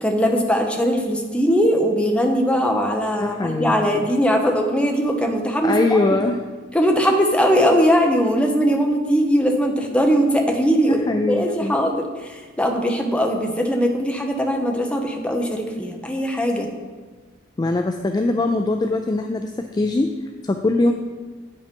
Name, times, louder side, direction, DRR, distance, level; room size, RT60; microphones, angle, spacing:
voice 1, 0.0-6.0 6.7-16.7, equal, 5° left, 2 dB, 0.8 m, -20 dB
voice 2, 3.2-4.1 5.6-6.4 10.9-11.8 17.6-20.1 20.4-20.9, left 2 dB, 20° left, 5 dB, 0.3 m, -22 dB
8.5 x 5.3 x 5.2 m, 1.4 s
head